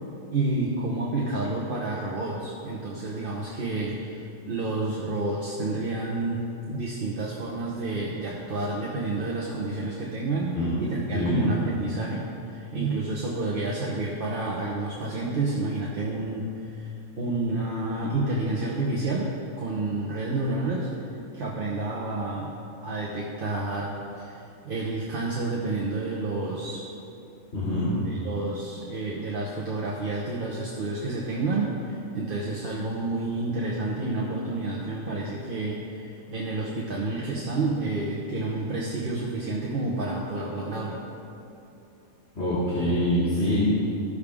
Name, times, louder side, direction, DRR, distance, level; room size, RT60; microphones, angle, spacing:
voice 1, 0.3-6.4 6.7-12.3 12.5-19.3 19.6-20.9 21.3-22.5 22.8-26.8 28.0-41.0, right 2 dB, 45° right, -4 dB, 1.1 m, -29 dB
voice 2, 27.5-27.9 42.3-43.6, equal, 50° left, -12 dB, 2.9 m, -25 dB
15.0 x 6.6 x 3.6 m, 2.7 s
omnidirectional pair, 1.4 m